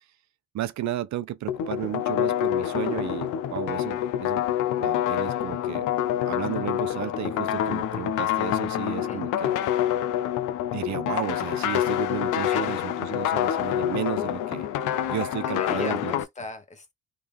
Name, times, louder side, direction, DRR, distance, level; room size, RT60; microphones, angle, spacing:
voice 1, 0.5-4.4 4.8-5.9 6.3-9.5 10.7-14.7 15.1-16.1, right 12 dB, 65° right, 0.7 m, -33 dB
sound 1, 1.5-16.2, left 11 dB, 85° left, 0.6 m, -27 dB
voice 2, 15.4-16.9, left 3 dB, 25° left, 1.3 m, -38 dB
3.3 x 2.7 x 3.5 m
cardioid pair, 90°, 30 cm